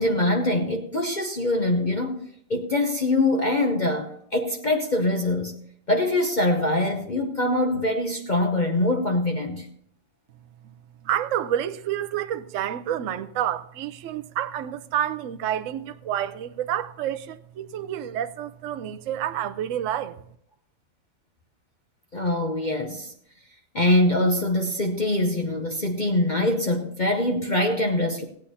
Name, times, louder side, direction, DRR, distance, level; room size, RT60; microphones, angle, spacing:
voice 1, 0.0-5.6 5.9-9.7 22.1-23.1 23.7-28.3, left 1 dB, 50° left, 0.5 m, -23 dB
voice 2, 11.0-20.2, right 11 dB, 90° right, 0.6 m, -29 dB
16.0 x 8.7 x 4.2 m
omnidirectional pair, 2.2 m